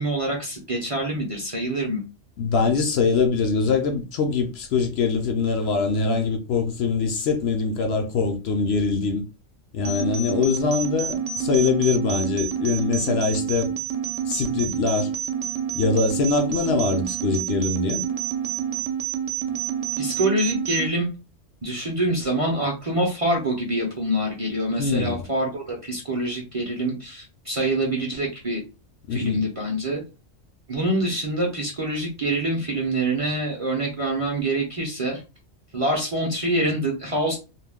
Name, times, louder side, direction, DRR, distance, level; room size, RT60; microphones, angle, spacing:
voice 1, 0.0-2.0 20.0-21.1 21.6-28.6 29.1-30.0 30.7-35.2 35.7-37.4, right 1 dB, 35° right, 0.6 m, -25 dB
voice 2, 2.4-9.2 9.7-13.7 14.2-15.1 15.7-18.1 24.8-25.3 29.1-29.5, left 4 dB, 65° left, 0.7 m, -23 dB
sound 1, 9.8-20.9, right 8 dB, 80° right, 0.9 m, -28 dB
2.4 x 2.2 x 3.4 m
omnidirectional pair, 1.3 m